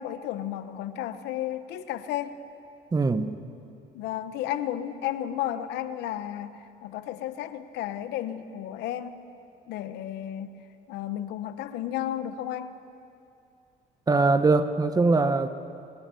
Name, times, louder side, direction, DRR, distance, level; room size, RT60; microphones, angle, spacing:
voice 1, 0.0-2.4 3.9-9.3 9.7-10.6 10.9-12.8, left 11 dB, 85° left, 1.1 m, -33 dB
voice 2, 2.9-3.4 14.1-15.5, right 3 dB, 20° right, 1.1 m, -22 dB
28.5 x 19.5 x 7.0 m
cardioid pair, 110°, 17 cm